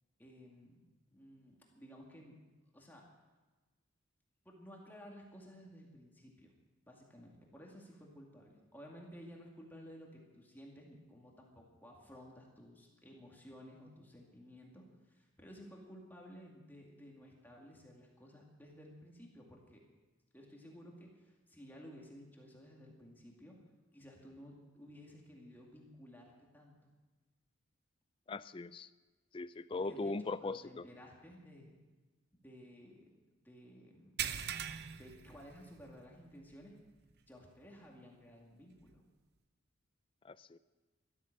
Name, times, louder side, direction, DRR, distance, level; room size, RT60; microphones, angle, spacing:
voice 1, 0.2-0.8 1.1-2.4 2.7-3.0 4.4-6.5 6.9-19.8 20.3-23.5 23.9-26.8 29.7-31.7 32.3-34.2 34.9-36.8 37.3-39.0, equal, 10° left, -1 dB, 2.2 m, -55 dB
voice 2, 28.3-28.9 29.3-30.9 40.2-40.6, left 3 dB, 25° left, 15 dB, 0.4 m, -40 dB
sound 1, 34.2-36.1 36.4-36.6 37.1-37.2 38.9-39.0, right 9 dB, 50° right, 0.7 m, -41 dB
13.5 x 13.0 x 6.6 m, 1.2 s
head